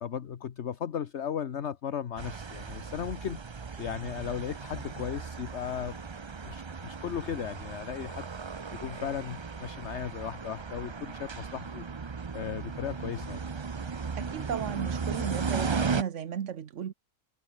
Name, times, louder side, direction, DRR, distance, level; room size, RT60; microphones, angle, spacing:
voice 1, 0.0-3.4 3.8-6.1 6.4-8.3 8.7-11.8 12.3-13.4, left 8 dB, 60° left, 1.2 m, -36 dB
sound 1, 2.2-16.0, right 5 dB, 30° right, 0.5 m, -36 dB
voice 2, 14.2-16.9, right 8 dB, 65° right, 1.3 m, -35 dB
omnidirectional pair, 1.4 m